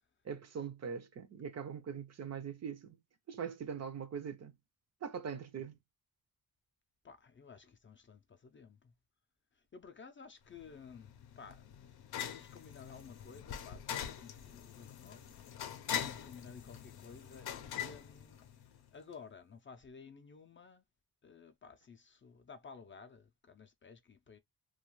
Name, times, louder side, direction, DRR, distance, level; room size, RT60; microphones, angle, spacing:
voice 1, 0.2-3.0 3.3-4.5 5.0-5.8, right 7 dB, 45° right, 0.5 m, -42 dB
voice 2, 7.0-8.9 9.5-15.2 15.9-18.4 18.9-20.8 21.2-24.4, left 5 dB, 35° left, 0.4 m, -54 dB
sound 1, 10.6-18.9, left 9 dB, 85° left, 0.6 m, -43 dB
2.3 x 2.3 x 3.0 m
wide cardioid pair, 125°, 36 cm